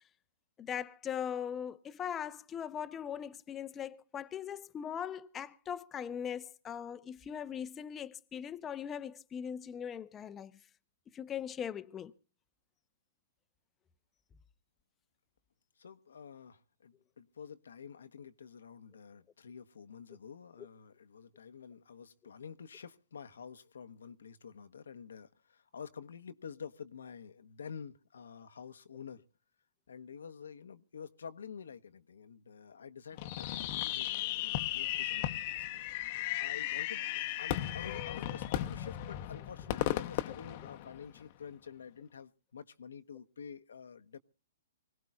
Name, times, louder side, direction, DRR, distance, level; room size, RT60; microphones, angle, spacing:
voice 1, 0.6-10.5 11.1-12.1 20.6-20.7, left 8 dB, 20° left, 0.8 m, -40 dB
voice 2, 15.8-29.2 29.9-35.7 36.4-37.0 37.4-44.2, left 6 dB, 85° left, 1.0 m, -49 dB
Fireworks, 33.2-41.3, left 14 dB, 45° left, 0.9 m, -36 dB
25.0 x 18.0 x 2.4 m
hypercardioid pair, 135°, 0 cm